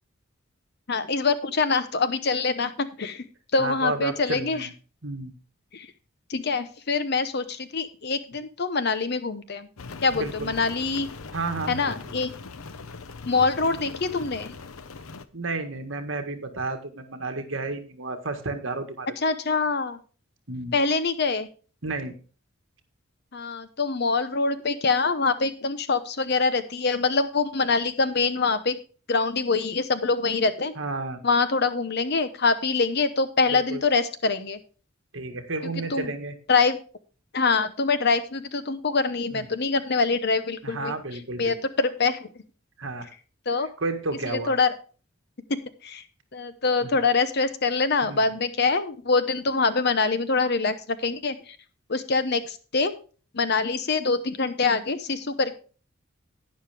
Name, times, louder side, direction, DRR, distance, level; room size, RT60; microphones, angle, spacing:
voice 1, 0.9-3.2 3.5-4.7 5.7-5.9 6.3-9.7 10.0-11.1 11.7-12.3 13.3-14.5 19.2-20.0 20.7-21.5 23.3-28.8 29.1-30.7 31.2-34.6 35.9-36.1 36.5-36.8 37.3-40.9 41.4-42.3 43.5-43.7 44.5-44.7 45.8-46.0 46.3-50.8 51.0-51.4 51.9-52.9 53.3-55.5, left 4 dB, 50° left, 12 dB, 0.9 m, -24 dB
voice 2, 3.6-4.7 5.0-5.3 10.1-10.5 11.3-12.1 15.3-19.1 20.5-20.7 21.8-22.1 30.7-31.2 33.5-33.8 35.1-36.4 39.3-39.5 40.6-41.6 42.8-43.1 43.6-44.6 46.8-47.0 48.0-48.2, right 3 dB, 65° right, 6 dB, 1.7 m, -32 dB
Rain, 9.8-15.3, left 4 dB, 85° left, 0.7 m, -40 dB
11.5 x 9.7 x 3.4 m, 0.37 s
head